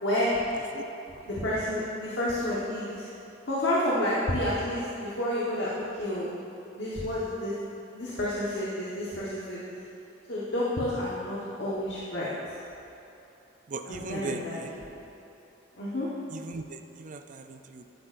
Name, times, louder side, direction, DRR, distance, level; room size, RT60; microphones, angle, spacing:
voice 1, 0.0-0.4 1.3-3.0 3.5-6.3 6.7-7.5 7.9-9.6 10.3-12.3 13.9-14.9 15.7-16.1, left 1 dB, 60° left, -8 dB, 1.2 m, -30 dB
voice 2, 13.7-14.7 16.3-17.8, right 4 dB, 40° right, 6 dB, 0.4 m, -38 dB
11.5 x 8.3 x 2.5 m, 2.9 s
head